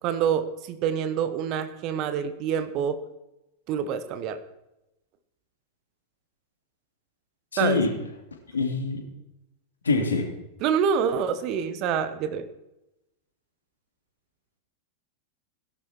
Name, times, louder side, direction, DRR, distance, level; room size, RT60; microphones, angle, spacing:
voice 1, 0.0-3.0 3.7-4.4 7.6-7.8 10.6-12.5, right 7 dB, 40° right, 11 dB, 1.4 m, -26 dB
voice 2, 7.5-7.9 8.5-9.0 9.8-10.3, left 4 dB, 75° left, 4 dB, 3.0 m, -24 dB
17.0 x 11.5 x 4.6 m, 0.91 s
figure-of-eight pair, 90°, 0 cm